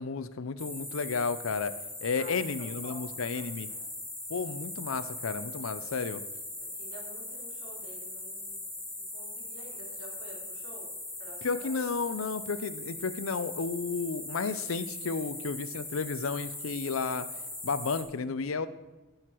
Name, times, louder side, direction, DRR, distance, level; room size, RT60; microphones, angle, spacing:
voice 1, 0.0-1.7 2.0-3.7 4.3-6.2 11.4-17.3 17.6-18.7, left 4 dB, 80° left, 14 dB, 0.6 m, -32 dB
sound 1, 0.6-18.0, left 2 dB, 5° left, 2.0 m, -40 dB
voice 2, 2.1-3.8 5.8-5.9 6.6-10.9 11.2-11.8, right 1 dB, 70° right, -1 dB, 3.1 m, -51 dB
16.0 x 6.5 x 4.6 m, 1.1 s
head